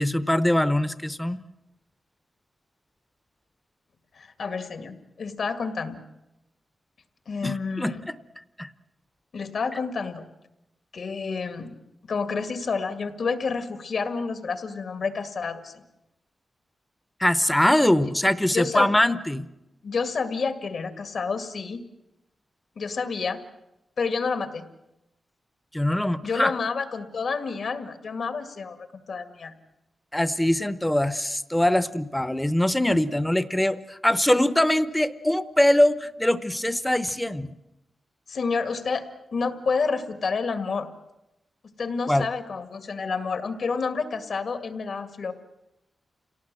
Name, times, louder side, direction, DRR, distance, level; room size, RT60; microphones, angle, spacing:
voice 1, 0.0-1.4 7.4-8.1 8.6-8.7 17.2-19.5 25.7-26.5 30.1-37.5 42.1-42.3, left 1 dB, 5° left, 14 dB, 0.8 m, -22 dB
voice 2, 4.1-6.0 7.3-8.0 9.3-10.2 10.9-11.8 12.0-15.8 18.5-18.9 19.8-21.8 22.8-23.4 24.0-24.6 26.2-29.5 38.3-40.9 41.8-45.3, left 4 dB, 65° left, 8 dB, 2.0 m, -29 dB
28.0 x 18.0 x 7.6 m, 0.92 s
wide cardioid pair, 130°, 0 cm